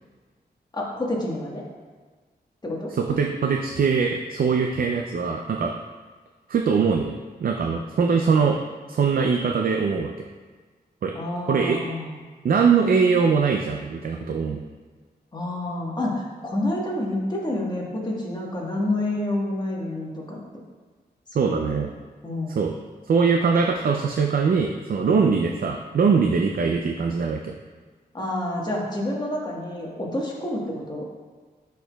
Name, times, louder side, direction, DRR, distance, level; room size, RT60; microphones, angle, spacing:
voice 1, 0.7-1.6 2.6-2.9 11.1-12.3 15.3-20.4 21.4-21.9 22.2-22.6 25.0-25.2 28.1-31.1, left 1 dB, 25° left, -3 dB, 1.4 m, -29 dB
voice 2, 2.9-5.7 6.5-8.6 8.9-10.1 11.0-11.1 11.5-11.8 12.4-14.6 21.3-21.9 22.6-22.7 23.1-27.5, right 5 dB, 60° right, 3 dB, 0.4 m, -22 dB
9.9 x 4.6 x 2.3 m, 1.4 s
wide cardioid pair, 100°, 17 cm